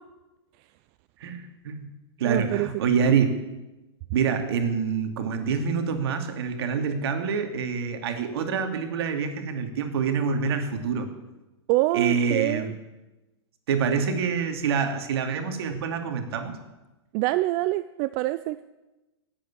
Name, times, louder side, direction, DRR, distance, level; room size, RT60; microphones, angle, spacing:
voice 1, 1.2-1.9 2.2-3.4 4.1-11.1 11.9-12.7 13.7-16.6, right 6 dB, 60° right, 6 dB, 2.4 m, -26 dB
voice 2, 2.2-2.7 11.7-12.7 17.1-18.6, right 18 dB, 35° right, 14 dB, 0.5 m, -25 dB
18.0 x 8.2 x 8.6 m, 1.1 s
hypercardioid pair, 125°, 15 cm